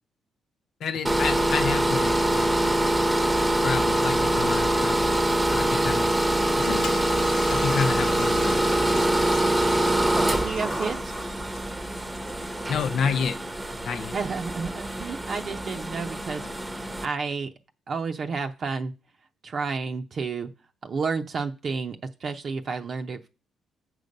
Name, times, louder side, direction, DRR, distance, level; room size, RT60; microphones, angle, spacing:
voice 1, 0.8-3.0 3.6-6.1 6.6-6.8 7.5-8.9 12.7-13.4 13.8-14.2, left 6 dB, 65° left, 0.5 m, -30 dB
sound 1, 1.0-17.0, right 1 dB, 10° right, 0.9 m, -24 dB
Toilet flush, 6.2-13.1, left 7 dB, 85° left, 0.9 m, -41 dB
voice 2, 10.2-11.1 14.1-17.5 17.9-18.9 19.4-20.5 20.8-23.3, right 4 dB, 50° right, 0.6 m, -31 dB
6.6 x 6.0 x 5.2 m
cardioid pair, 90°, 0 cm